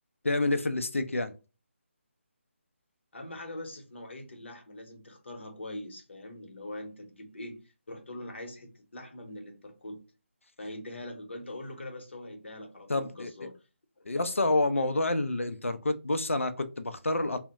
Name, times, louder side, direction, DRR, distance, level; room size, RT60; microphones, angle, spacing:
voice 1, 0.2-1.3 12.9-13.3 14.1-17.4, left 2 dB, 85° left, 0.4 m, -28 dB
voice 2, 3.1-10.0 10.6-13.6, left 1 dB, 65° left, 0.9 m, -43 dB
3.6 x 2.1 x 2.8 m
figure-of-eight pair, 150°, 7 cm